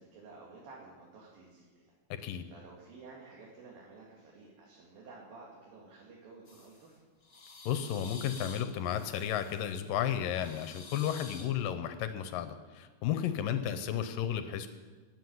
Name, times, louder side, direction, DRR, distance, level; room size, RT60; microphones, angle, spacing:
voice 1, 0.0-2.0 2.5-7.0 13.2-13.4, right 3 dB, 85° right, -4 dB, 4.0 m, -53 dB
sound 1, 6.5-6.8 7.2-9.7 10.2-11.5, left 3 dB, 40° left, 0.8 m, -49 dB
voice 2, 7.7-14.7, left 9 dB, 80° left, 9 dB, 2.4 m, -33 dB
20.0 x 7.8 x 7.9 m, 1.4 s
omnidirectional pair, 3.9 m